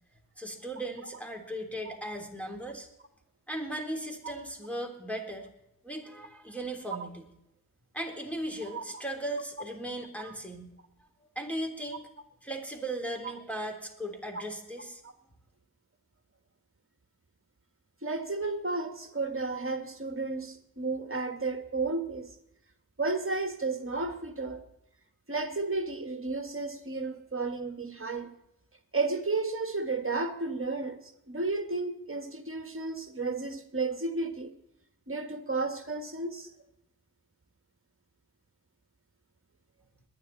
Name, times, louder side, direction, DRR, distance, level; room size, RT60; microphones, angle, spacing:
voice 1, 0.4-2.9 3.5-5.5 5.8-7.3 7.9-10.7 11.2-12.0 12.4-15.0, right 1 dB, 5° left, 3.6 m, -37 dB
voice 2, 18.0-22.4 23.0-24.6 25.3-28.3 28.9-34.6 35.1-36.5, right 3 dB, 35° right, 1.9 m, -33 dB
22.0 x 10.0 x 4.2 m
wide cardioid pair, 55°, 36 cm